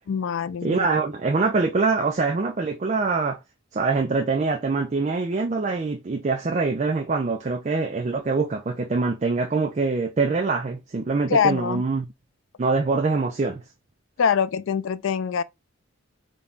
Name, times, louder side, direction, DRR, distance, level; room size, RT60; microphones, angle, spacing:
voice 1, 0.1-0.9 11.3-11.8 14.2-15.4, left 7 dB, 65° left, 0.3 m, -23 dB
voice 2, 0.6-3.4 3.7-12.1 12.6-13.6, right 4 dB, 35° right, 0.4 m, -24 dB
4.0 x 2.2 x 3.5 m
head